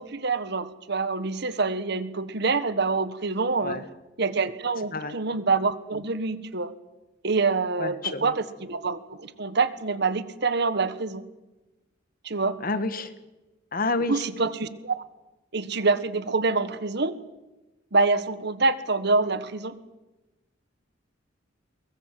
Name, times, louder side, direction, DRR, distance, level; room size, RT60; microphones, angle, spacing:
voice 1, 0.0-3.8 4.2-6.7 7.2-11.2 12.2-12.6 14.1-14.9 15.5-17.2 17.9-19.7, right 3 dB, 60° right, 13 dB, 1.4 m, -26 dB
voice 2, 7.8-8.3 12.6-13.1 13.7-14.2, left 3 dB, 50° left, 12 dB, 1.6 m, -29 dB
23.0 x 21.0 x 7.6 m, 1.1 s
head